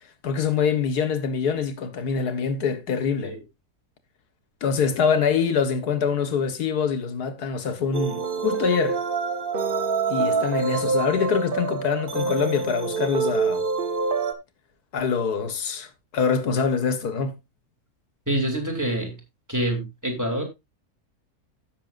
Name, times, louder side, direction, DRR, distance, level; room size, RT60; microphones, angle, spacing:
voice 1, 0.2-3.4 4.6-9.0 10.1-13.6 14.9-17.4, left 6 dB, 85° left, 1.9 m, -24 dB
sound 1, 7.9-14.3, right 4 dB, 40° right, 1.2 m, -26 dB
voice 2, 18.3-19.2 19.5-20.4, right 1 dB, 10° right, 3.0 m, -26 dB
16.0 x 6.8 x 2.5 m
omnidirectional pair, 1.6 m